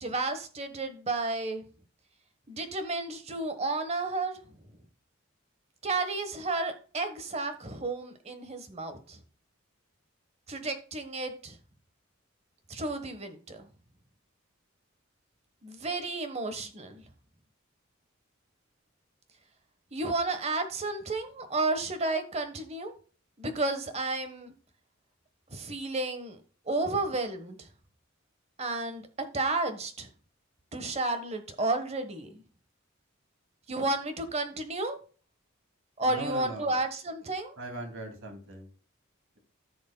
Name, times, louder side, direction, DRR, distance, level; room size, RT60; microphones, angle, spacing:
voice 1, 0.0-1.6 2.5-4.5 5.8-9.2 10.5-11.6 12.7-13.7 15.6-17.0 19.9-22.9 23.4-24.5 25.5-26.4 26.7-27.7 28.6-29.1 29.3-30.1 30.7-32.4 33.7-35.0 36.0-37.5, right 2 dB, 30° right, 8 dB, 1.2 m, -32 dB
voice 2, 36.0-36.7 37.6-38.7, right 1 dB, 70° right, 3 dB, 2.4 m, -39 dB
14.5 x 6.3 x 2.2 m, 0.38 s
head